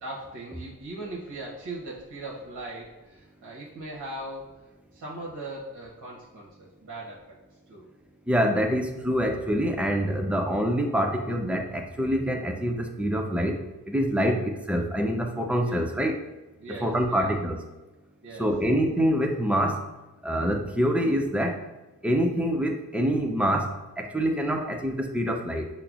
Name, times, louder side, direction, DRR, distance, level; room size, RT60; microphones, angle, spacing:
voice 1, 0.0-4.5 4.9-7.4 7.7-7.9 15.6-15.8 16.6-17.3 18.2-18.5, right 2 dB, 50° right, -4 dB, 0.8 m, -39 dB
voice 2, 8.3-13.6 13.9-16.2 16.7-17.6 18.4-19.8 20.2-21.6 22.0-25.7, equal, 5° right, 3 dB, 0.4 m, -25 dB
5.4 x 2.0 x 2.4 m, 1.1 s
cardioid pair, 50°, 40 cm